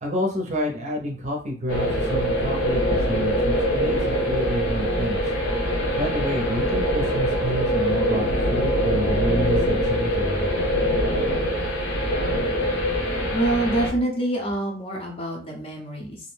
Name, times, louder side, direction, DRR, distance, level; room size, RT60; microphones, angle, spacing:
voice 1, 0.0-5.2 6.0-8.2 8.5-10.6, left 1 dB, 35° right, 0 dB, 0.6 m, -29 dB
sound 1, 1.7-13.9, equal, 75° left, 0.8 m, -23 dB
voice 2, 13.3-16.2, right 1 dB, 30° left, 1 dB, 0.6 m, -26 dB
2.5 x 2.0 x 3.2 m, 0.39 s
head